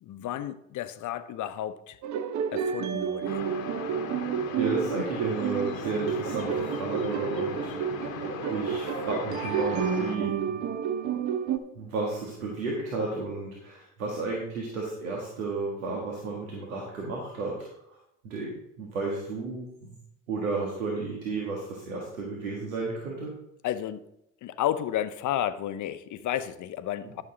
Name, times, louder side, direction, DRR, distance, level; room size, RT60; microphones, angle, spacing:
voice 1, 0.0-2.0 2.5-3.4 23.6-24.0 24.4-27.2, left 11 dB, 50° left, 0.8 m, -32 dB
sound 1, 2.0-11.6, right 8 dB, 45° right, 0.9 m, -30 dB
sound 2, 3.3-10.2, left 7 dB, 85° left, 1.0 m, -38 dB
voice 2, 4.6-10.6 11.8-18.0 18.2-20.0 20.3-23.3, right 3 dB, 85° right, 1.7 m, -33 dB
11.0 x 6.9 x 3.8 m
hypercardioid pair, 70°, 39 cm